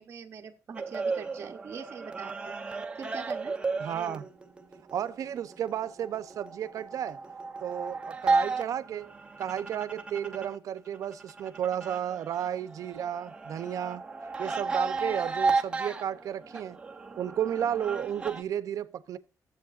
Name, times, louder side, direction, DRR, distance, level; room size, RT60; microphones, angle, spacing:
voice 1, 0.0-2.5 3.0-3.6, right 6 dB, 40° right, 0.9 m, -42 dB
sound 1, 0.8-10.6 10.9-18.4, right 4 dB, 15° right, 0.8 m, -34 dB
voice 2, 3.8-4.3 4.9-7.2 7.6-9.1 9.4-14.0 14.4-16.8 17.2-19.2, right 9 dB, 65° right, 0.7 m, -33 dB
14.0 x 7.8 x 2.5 m
cardioid pair, 155°, 6 cm